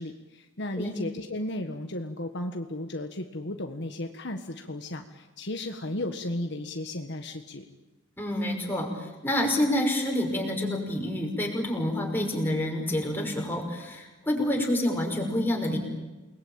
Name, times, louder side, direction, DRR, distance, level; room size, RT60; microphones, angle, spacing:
voice 1, 0.0-7.6, left 1 dB, 55° left, 5 dB, 1.6 m, -34 dB
voice 2, 8.2-15.8, left 1 dB, 10° left, 1 dB, 5.7 m, -28 dB
29.0 x 21.0 x 8.9 m, 1.2 s
head